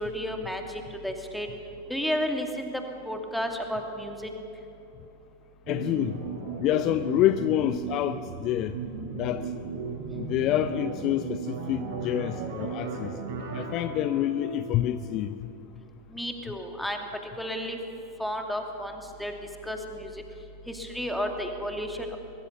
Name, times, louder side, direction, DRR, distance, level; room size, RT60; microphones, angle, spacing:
voice 1, 0.0-1.5 1.9-4.3 16.1-17.8 18.2-18.9 19.2-19.3 19.6-20.2 20.7-22.2, equal, ahead, 2.5 m, -32 dB
sound 1, 5.6-15.3, right 4 dB, 50° right, 7.3 m, -36 dB
voice 2, 5.7-6.2 6.6-8.8 9.1-9.5 10.2-13.1 13.5-15.4, left 13 dB, 35° left, 0.6 m, -27 dB
22.0 x 21.5 x 6.9 m
figure-of-eight pair, 90°, 0 cm